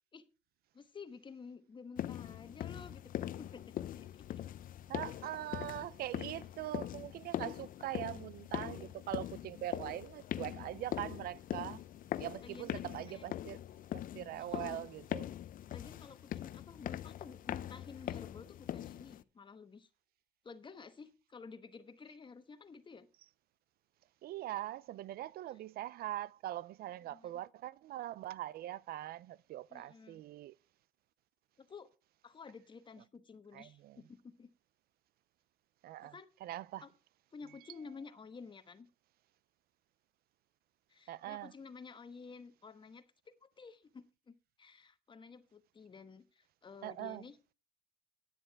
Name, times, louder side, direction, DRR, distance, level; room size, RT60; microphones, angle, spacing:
voice 1, 0.7-3.1 3.4-4.2 12.4-12.7 13.1-13.3 14.4-14.8 15.7-19.9 20.4-23.1 27.1-27.3 29.7-30.2 31.6-31.9 32.2-34.5 36.0-36.3 36.8-36.9 37.3-38.9 40.9-43.0 43.4-47.4, left 5 dB, 30° left, 1.2 m, -52 dB
sound 1, 2.0-19.2, left 12 dB, 55° left, 0.6 m, -42 dB
voice 2, 4.9-11.8 12.2-13.6 13.9-15.3 24.2-30.6 33.5-34.0 35.8-36.1 36.4-36.8 41.1-41.5 46.8-47.2, right 14 dB, 65° right, 0.5 m, -42 dB
10.0 x 10.0 x 4.6 m
cardioid pair, 110°, 17 cm